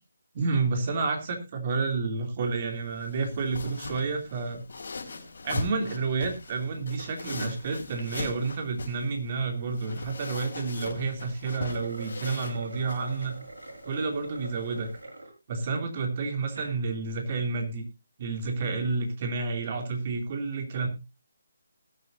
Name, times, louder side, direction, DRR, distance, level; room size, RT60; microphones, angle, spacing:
voice 1, 0.3-4.6 5.4-13.3 13.8-14.9 15.5-17.8 18.2-20.9, right 4 dB, 40° right, 4 dB, 3.0 m, -30 dB
sound 1, 2.4-15.0, left 3 dB, 60° left, 4.3 m, -41 dB
sound 2, 11.4-15.3 15.8-15.9 16.4-16.8, right 2 dB, 80° right, 6.5 m, -44 dB
20.0 x 8.4 x 2.7 m, 0.26 s
figure-of-eight pair, 150°, 0 cm